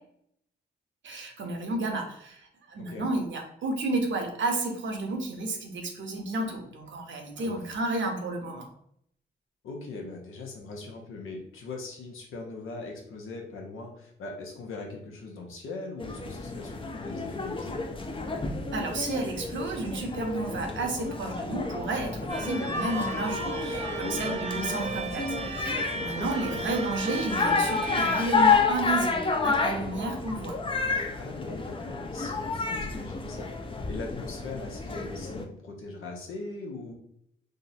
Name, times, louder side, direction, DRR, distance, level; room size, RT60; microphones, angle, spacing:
voice 1, 1.0-8.7 18.7-30.6, right 2 dB, 65° right, 3 dB, 0.8 m, -32 dB
voice 2, 9.6-17.9 24.0-24.4 26.4-26.6 31.2-33.5 33.9-36.9, left 3 dB, 80° left, 0 dB, 0.8 m, -40 dB
sound 1, 16.0-35.4, left 4 dB, 25° left, 0.5 m, -30 dB
sound 2, 22.3-28.5, right 3 dB, 35° right, 0.4 m, -35 dB
3.6 x 2.1 x 2.7 m, 0.69 s
supercardioid pair, 50°, 21 cm